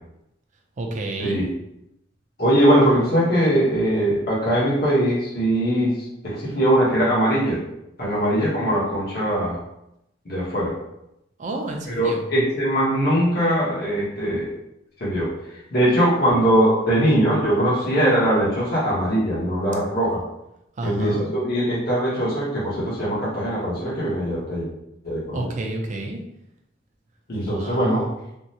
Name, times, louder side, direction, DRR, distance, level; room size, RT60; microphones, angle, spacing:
voice 1, 0.8-1.5 11.4-12.2 20.8-21.3 25.3-26.2 27.5-28.1, right 2 dB, 45° right, 2 dB, 0.5 m, -30 dB
voice 2, 2.4-6.0 6.2-7.6 8.0-9.6 10.2-10.7 11.9-14.5 15.0-15.3 15.7-20.2 20.8-24.7 25.0-25.5 27.3-28.1, equal, 60° left, -7 dB, 1.0 m, -21 dB
3.5 x 2.1 x 2.7 m, 0.83 s
head